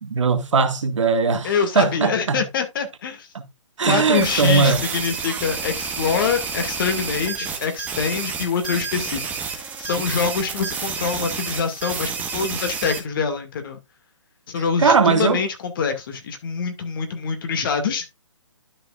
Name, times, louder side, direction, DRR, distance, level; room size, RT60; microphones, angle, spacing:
voice 1, 0.0-2.4 3.8-4.8 14.8-15.4, right 4 dB, 70° right, 1.8 m, -19 dB
voice 2, 1.4-3.3 3.9-9.2 9.6-13.8 14.5-18.1, left 6 dB, 45° left, 2.1 m, -25 dB
sound 1, 4.1-13.0, right 5 dB, 10° right, 1.2 m, -30 dB
12.0 x 5.1 x 2.4 m
hypercardioid pair, 150°, 16 cm